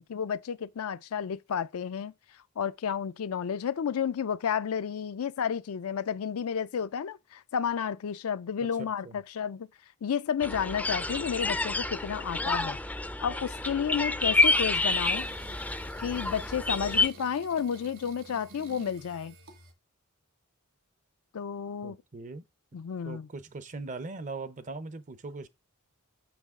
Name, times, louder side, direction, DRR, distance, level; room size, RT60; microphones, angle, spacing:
voice 1, 0.0-2.1 2.6-9.7 10.0-12.8 13.2-15.3 16.0-19.3 21.3-22.0 22.7-23.3, left 7 dB, 70° left, 0.4 m, -31 dB
voice 2, 8.6-9.2 21.8-22.4 23.0-25.5, right 3 dB, 35° right, 0.6 m, -40 dB
sound 1, 10.4-17.1, left 3 dB, 5° left, 0.4 m, -28 dB
sound 2, 14.7-19.7, right 3 dB, 60° right, 1.6 m, -51 dB
6.4 x 6.0 x 3.6 m
head